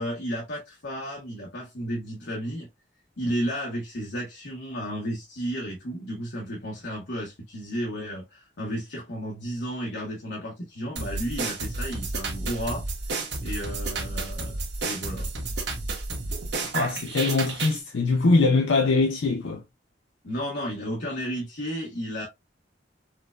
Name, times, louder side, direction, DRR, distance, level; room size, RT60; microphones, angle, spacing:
voice 1, 0.0-2.7 3.2-12.8 13.4-14.6 14.8-15.3 20.2-22.2, equal, 65° left, 1.0 m, -33 dB
sound 1, 11.0-17.8, right 3 dB, 65° right, 1.1 m, -31 dB
voice 2, 16.7-19.6, left 3 dB, 90° left, 0.6 m, -22 dB
4.7 x 2.2 x 2.3 m
head